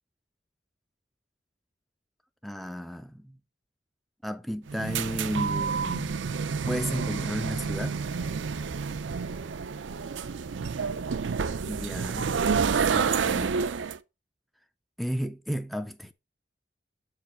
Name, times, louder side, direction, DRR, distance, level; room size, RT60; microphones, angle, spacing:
voice 1, 2.4-3.4 4.2-6.1 6.7-8.0 11.7-13.5 15.0-16.1, equal, ahead, 0.4 m, -33 dB
sound 1, 4.7-14.0, right 5 dB, 85° right, 0.5 m, -29 dB
7.4 x 4.9 x 4.3 m
head